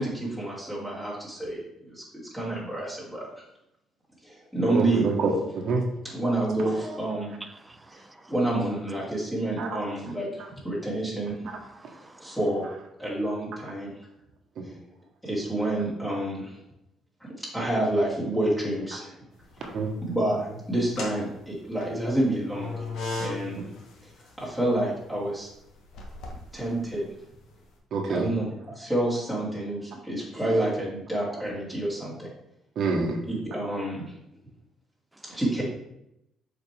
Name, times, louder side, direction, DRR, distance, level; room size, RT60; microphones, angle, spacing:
voice 1, 0.0-2.0 2.3-3.3 4.2-5.0 6.0-7.4 7.9-11.3 12.2-12.7 13.0-13.9 14.6-14.7 15.2-16.6 17.2-19.2 20.0-22.9 23.2-23.6 24.4-25.5 26.5-27.0 28.1-32.3 33.3-34.1 35.2-35.6, right 1 dB, 5° left, 2.5 m, -28 dB
voice 2, 4.7-5.8 9.6-9.8 14.6-14.7 19.6-19.9 27.9-28.3 32.8-33.2, right 4 dB, 60° right, 1.2 m, -26 dB
voice 3, 7.4-8.3 11.4-12.4 35.1-35.4, right 2 dB, 15° right, 0.5 m, -47 dB
sound 1, 19.4-20.1 20.7-27.6, left 3 dB, 70° left, 1.3 m, -38 dB
7.0 x 4.5 x 3.4 m
cardioid pair, 100°, 0 cm